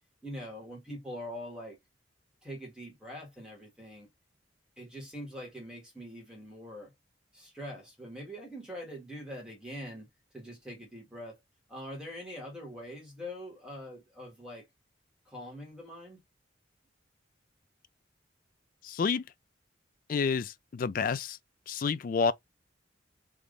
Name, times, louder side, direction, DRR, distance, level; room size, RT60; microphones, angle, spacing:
voice 1, 0.2-1.8 2.4-4.1 4.8-6.9 7.3-10.1 10.3-11.4 11.7-14.7 15.3-16.2, equal, 5° right, 1.7 m, -43 dB
voice 2, 18.8-19.3 20.1-21.4 21.7-22.3, left 5 dB, 45° left, 0.3 m, -29 dB
3.5 x 3.0 x 3.9 m
head